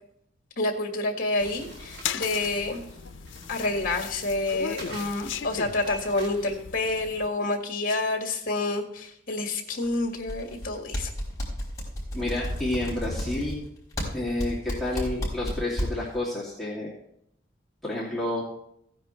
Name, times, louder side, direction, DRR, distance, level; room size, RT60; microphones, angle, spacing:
voice 1, 0.6-2.9 3.5-11.1, left 2 dB, 45° left, 4 dB, 1.9 m, -28 dB
sound 1, 1.4-7.3, left 8 dB, 75° left, 0.6 m, -38 dB
sound 2, 1.4-6.6, equal, 55° right, 2.8 m, -45 dB
sound 3, 9.8-10.7 10.9-16.2, equal, 15° left, 5.0 m, -31 dB
voice 2, 12.1-13.6 14.1-16.9 17.8-18.4, left 1 dB, ahead, -8 dB, 2.6 m, -30 dB
16.0 x 9.9 x 3.3 m, 0.71 s
head